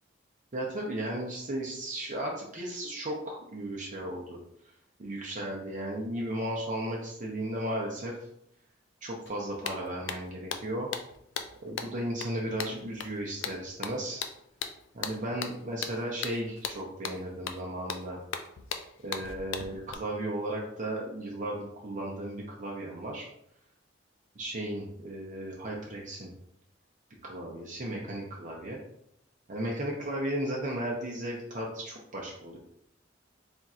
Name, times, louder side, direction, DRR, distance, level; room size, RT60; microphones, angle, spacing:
voice 1, 0.5-4.4 5.0-8.1 9.0-10.9 11.6-14.2 14.9-18.2 19.0-23.3 24.4-26.3 27.2-28.8 29.5-32.6, right 1 dB, 40° right, -3 dB, 0.6 m, -35 dB
sound 1, 9.3-9.4 9.6-19.9, left 6 dB, 90° left, 0.4 m, -38 dB
3.5 x 2.4 x 4.1 m, 0.75 s
head